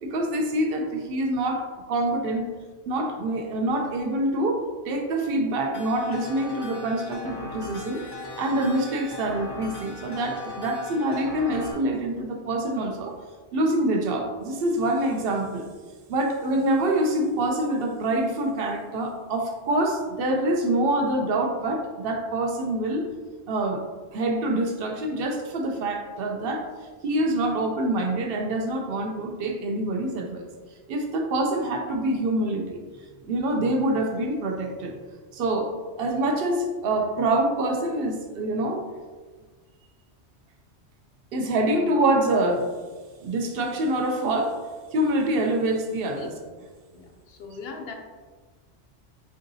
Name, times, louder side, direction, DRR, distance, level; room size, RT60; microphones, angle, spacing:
voice 1, 0.0-2.5 2.9-13.2 13.5-15.7 16.1-23.1 23.5-23.8 24.1-26.7 27.0-30.5 30.9-32.8 33.2-35.0 35.3-35.7 36.0-38.8 41.3-42.6 43.2-44.6 44.9-46.4, right 1 dB, 60° right, 4 dB, 0.7 m, -26 dB
sound 1, 5.7-11.7, left 2 dB, 30° left, 0.4 m, -38 dB
voice 2, 46.9-47.9, left 4 dB, 65° left, 4 dB, 0.8 m, -40 dB
4.6 x 3.8 x 2.6 m, 1.4 s
omnidirectional pair, 1.2 m